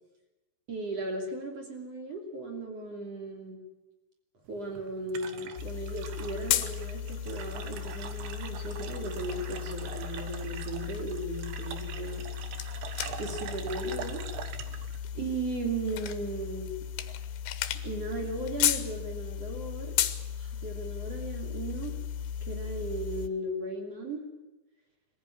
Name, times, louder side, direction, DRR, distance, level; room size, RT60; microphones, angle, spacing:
voice 1, 0.7-3.6 4.5-12.2 13.2-14.2 15.1-16.7 17.8-20.0 20.3-21.9 22.4-24.2, right 2 dB, 40° right, 2 dB, 3.0 m, -36 dB
sound 1, 4.5-16.2, right 8 dB, 70° right, 2.8 m, -44 dB
sound 2, 5.6-23.3, left 10 dB, 75° left, 2.4 m, -35 dB
22.0 x 15.0 x 9.8 m, 1.1 s
omnidirectional pair, 5.9 m